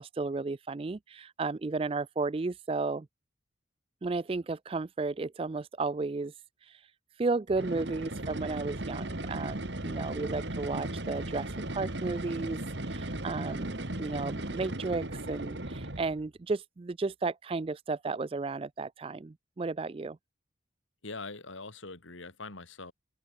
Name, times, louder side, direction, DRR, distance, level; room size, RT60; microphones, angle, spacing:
voice 1, 0.0-3.1 4.0-20.2, right 3 dB, 30° right, 0.3 m, -34 dB
sound 1, 7.5-16.3, right 1 dB, 65° right, 2.6 m, -36 dB
voice 2, 21.0-22.9, left 3 dB, 85° left, 3.0 m, -42 dB
head